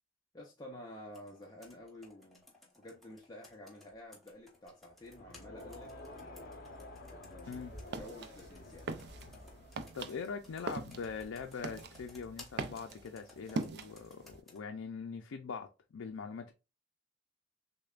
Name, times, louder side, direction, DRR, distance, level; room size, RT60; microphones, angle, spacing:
voice 1, 0.3-2.4 2.8-5.9 6.2-6.6 7.1-7.6 8.0-9.0, left 1 dB, 20° left, 0.6 m, -51 dB
Computer keyboard, 1.1-14.6, left 1 dB, ahead, 1.1 m, -58 dB
Crowd, 5.0-10.2, left 1 dB, 50° left, 0.8 m, -51 dB
sound 1, 7.4-14.4, right 3 dB, 55° right, 0.4 m, -43 dB
voice 2, 9.9-16.5, left 5 dB, 90° left, 0.4 m, -42 dB
6.4 x 2.2 x 2.4 m
head